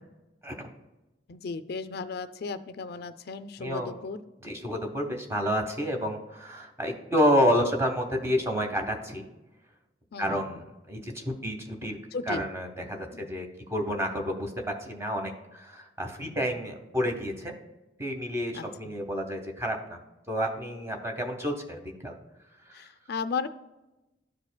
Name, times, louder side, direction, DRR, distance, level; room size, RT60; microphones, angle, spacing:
voice 1, 1.3-4.2 10.1-10.6 12.1-12.4 13.1-13.3 18.5-18.6 22.7-23.5, left 4 dB, 55° left, 12 dB, 0.4 m, -35 dB
voice 2, 3.6-4.0 4.4-9.2 10.2-12.0 12.3-14.5 14.8-17.5 18.0-20.0 20.3-22.1, equal, 15° right, 3 dB, 0.9 m, -29 dB
12.5 x 4.8 x 2.2 m, 1.0 s
head